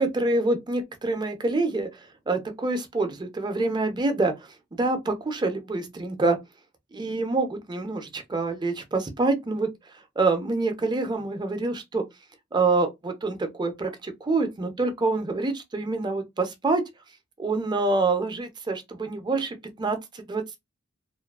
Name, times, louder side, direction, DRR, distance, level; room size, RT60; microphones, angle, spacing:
voice 1, 0.0-2.0 2.3-4.3 4.8-6.4 6.9-9.7 10.2-12.1 12.5-16.8 17.4-20.6, right 3 dB, 20° right, 0.4 m, -26 dB
2.3 x 2.3 x 2.3 m
head